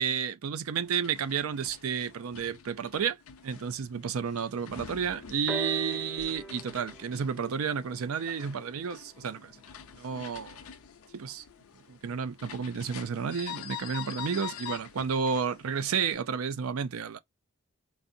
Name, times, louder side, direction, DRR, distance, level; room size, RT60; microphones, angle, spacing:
voice 1, 0.0-3.2 3.4-9.5 9.9-10.6 11.1-11.4 11.9-17.2, right 6 dB, 80° right, 0.4 m, -31 dB
sound 1, 0.8-16.1, left 9 dB, 85° left, 0.6 m, -46 dB
sound 2, 5.5-9.3 10.2-10.3, right 3 dB, 5° right, 0.5 m, -41 dB
4.0 x 2.5 x 2.6 m
head